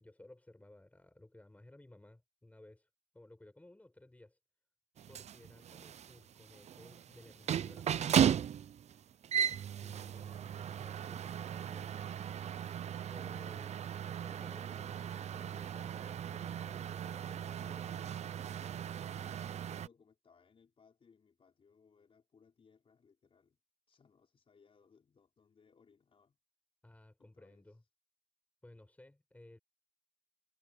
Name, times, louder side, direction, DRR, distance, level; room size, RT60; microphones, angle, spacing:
voice 1, 0.0-2.9 3.1-4.4 5.1-8.4 9.8-12.1 13.1-13.8 14.2-18.3 26.8-27.8 28.6-29.6, left 1 dB, 10° left, 7.1 m, -58 dB
sound 1, 5.0-19.9, right 9 dB, 40° right, 0.6 m, -37 dB
voice 2, 19.2-23.6 23.9-26.4 27.2-27.8, left 5 dB, 35° left, 4.9 m, -67 dB
cardioid pair, 110°, 17 cm